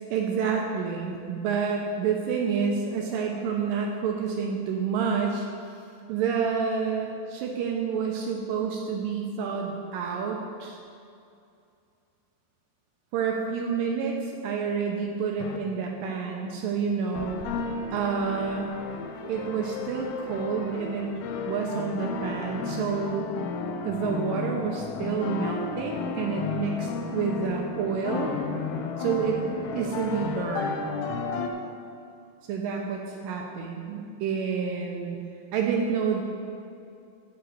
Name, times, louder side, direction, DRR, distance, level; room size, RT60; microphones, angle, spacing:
voice 1, 0.1-5.5 6.1-10.8 13.1-17.5 17.9-18.7 19.3-21.1 21.5-23.3 23.8-28.3 29.0-29.4 29.7-30.8 32.5-35.2 35.5-36.2, right 6 dB, 90° right, 0 dB, 1.9 m, -29 dB
sound 1, 15.4-15.6 17.1-31.5, left 5 dB, 80° left, 2.5 m, -33 dB
10.5 x 4.1 x 7.6 m, 2.5 s
omnidirectional pair, 4.8 m